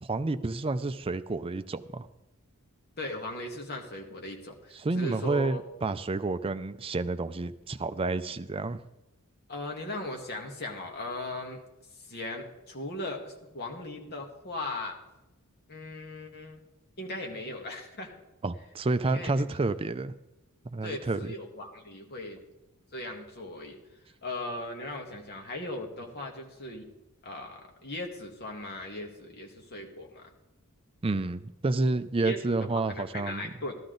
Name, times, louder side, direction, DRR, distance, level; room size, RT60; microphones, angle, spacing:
voice 1, 0.0-2.1 4.7-8.8 18.4-20.2 20.6-21.2 31.0-33.5, right 3 dB, 25° right, 12 dB, 0.4 m, -30 dB
voice 2, 3.0-5.6 9.5-11.6 11.9-15.0 15.7-16.6 17.0-18.1 19.0-19.6 20.8-22.4 22.9-23.8 24.2-26.8 27.2-30.3 32.2-33.8, left 2 dB, 45° left, 2 dB, 1.7 m, -38 dB
13.5 x 13.0 x 3.9 m, 0.96 s
head